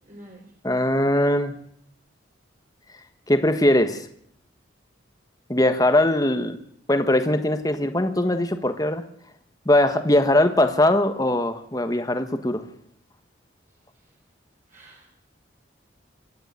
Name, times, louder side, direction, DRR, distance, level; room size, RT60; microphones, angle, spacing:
voice 1, 0.0-0.5 14.7-15.1, right 1 dB, 40° right, -1 dB, 4.5 m, -47 dB
voice 2, 0.6-1.5 3.3-4.1 5.5-6.6 6.9-9.0 9.6-12.6, left 1 dB, 20° left, 8 dB, 1.4 m, -21 dB
25.0 x 12.5 x 9.6 m, 0.69 s
head